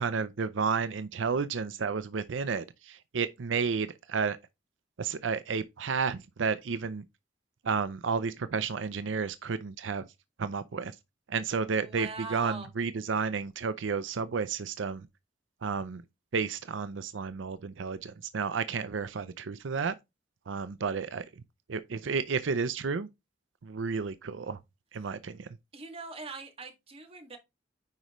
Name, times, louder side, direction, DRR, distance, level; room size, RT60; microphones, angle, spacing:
voice 1, 0.0-4.4 5.0-7.0 7.6-10.0 10.4-11.0 11.3-15.1 15.6-16.0 16.3-19.9 20.5-21.4 21.7-23.1 23.6-24.6 24.9-25.5, right 5 dB, 90° right, 0.5 m, -32 dB
voice 2, 11.8-12.7 25.7-27.4, right 3 dB, 30° right, 2.0 m, -41 dB
9.5 x 5.0 x 3.1 m
head